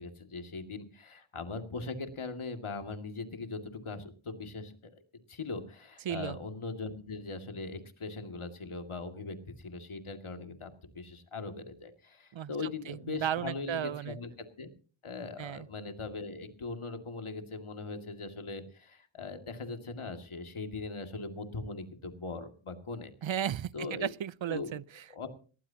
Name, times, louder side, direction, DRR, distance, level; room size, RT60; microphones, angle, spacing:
voice 1, 0.0-5.0 5.3-14.3 14.6-14.7 15.0-23.1 23.7-24.1 24.5-24.7 25.1-25.3, left 3 dB, 75° left, 2.4 m, -40 dB
voice 2, 6.0-6.4 12.3-14.2 15.4-15.7 23.2-25.0, right 10 dB, 65° right, 0.6 m, -35 dB
18.5 x 18.0 x 2.9 m
cardioid pair, 50°, 50 cm